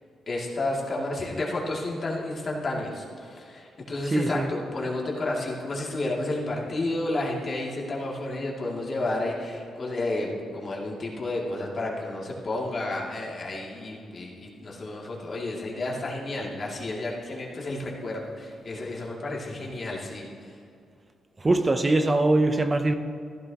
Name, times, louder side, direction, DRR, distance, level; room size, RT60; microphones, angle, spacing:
voice 1, 0.3-20.5, left 2 dB, 45° left, 2.5 m, -31 dB
voice 2, 4.1-4.5 21.4-22.9, right 2 dB, 25° right, 0.6 m, -22 dB
15.0 x 12.0 x 2.9 m
cardioid pair, 95°, 0 cm